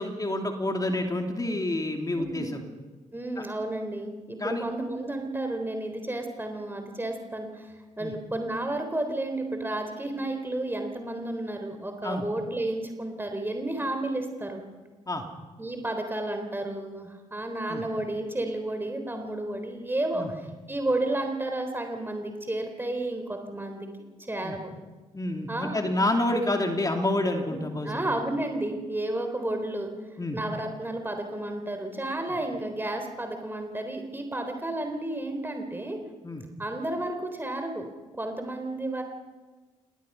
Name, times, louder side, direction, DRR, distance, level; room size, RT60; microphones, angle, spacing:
voice 1, 0.0-2.6 3.4-3.5 4.4-4.6 8.0-8.1 12.0-12.2 15.1-15.3 17.7-17.8 20.1-20.3 24.4-24.5 25.1-28.2 30.2-30.4 36.2-36.5, left 1 dB, 25° left, 3 dB, 2.9 m, -28 dB
voice 2, 2.1-2.5 3.1-14.6 15.6-20.2 20.7-23.9 24.2-24.7 25.5-25.8 27.5-29.9 30.3-36.0 36.6-37.9 38.2-39.0, right 1 dB, 15° right, 5 dB, 3.7 m, -32 dB
27.5 x 20.0 x 5.6 m, 1.3 s
hypercardioid pair, 45°, 15 cm